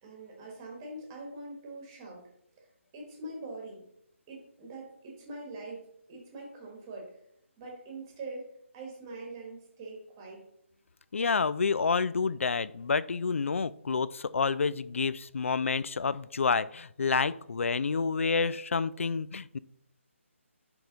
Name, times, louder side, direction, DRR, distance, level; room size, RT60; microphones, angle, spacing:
voice 1, 0.0-2.3 2.6-2.7 2.9-3.8 4.3-5.8 6.1-7.2 7.6-8.5 8.7-10.4, right 2 dB, 15° right, 0 dB, 1.2 m, -43 dB
voice 2, 11.1-19.6, left 5 dB, 70° left, 18 dB, 0.4 m, -29 dB
10.5 x 3.5 x 3.8 m, 0.73 s
hypercardioid pair, 175°, 7 cm